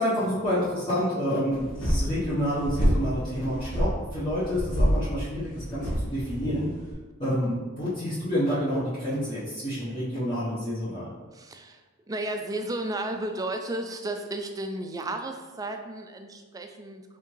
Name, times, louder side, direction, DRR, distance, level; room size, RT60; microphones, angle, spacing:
voice 1, 0.0-6.7 7.2-11.1, equal, 25° left, -11 dB, 1.0 m, -28 dB
sound 1, 1.5-6.9, equal, 85° left, 1.1 m, -28 dB
voice 2, 11.3-11.8 12.1-17.0, right 1 dB, 15° right, 5 dB, 0.3 m, -33 dB
4.5 x 3.5 x 3.1 m, 1.3 s
head